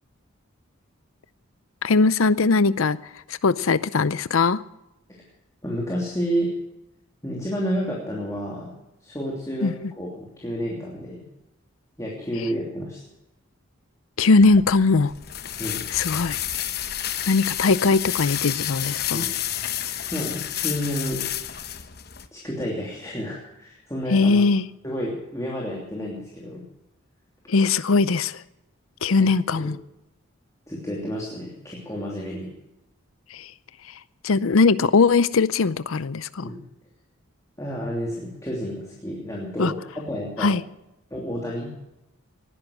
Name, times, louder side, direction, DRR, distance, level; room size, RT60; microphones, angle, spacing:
voice 1, 1.8-3.0 3.3-4.6 9.6-9.7 14.2-15.1 15.9-16.4 17.3-19.2 24.1-24.7 27.5-28.4 29.0-29.8 33.3-33.5 34.2-36.5 39.6-39.7 40.4-40.6, left 4 dB, 75° left, 0.6 m, -20 dB
voice 2, 5.6-6.5 7.2-8.7 9.0-11.2 12.0-13.0 15.6-15.8 19.1-19.3 20.1-21.2 22.3-24.4 24.8-26.6 29.2-29.7 30.7-32.5 36.4-36.6 37.6-40.5 41.1-41.7, equal, 15° left, 2.9 m, -30 dB
sound 1, 14.4-22.3, left 11 dB, 45° left, 1.0 m, -30 dB
19.0 x 11.0 x 6.4 m
head